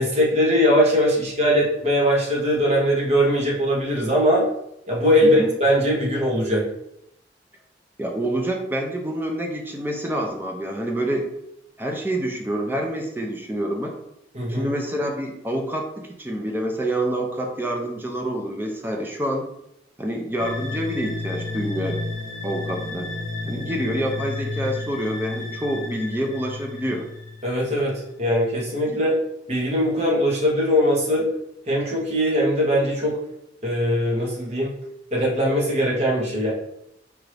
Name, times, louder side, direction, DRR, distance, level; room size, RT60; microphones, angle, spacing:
voice 1, 0.0-4.5 4.9-6.7 14.3-14.7 27.4-29.2 29.5-31.3 31.7-33.2 33.6-34.7 35.1-36.5, equal, 35° right, -3 dB, 1.2 m, -21 dB
voice 2, 8.0-11.3 11.8-13.9 14.5-19.4 20.0-22.0 22.4-23.1 23.5-27.1 28.9-29.0, right 1 dB, 10° right, 1 dB, 0.5 m, -27 dB
sound 1, 20.4-27.9, left 3 dB, 45° left, 1.2 m, -32 dB
4.7 x 2.6 x 3.3 m, 0.80 s
head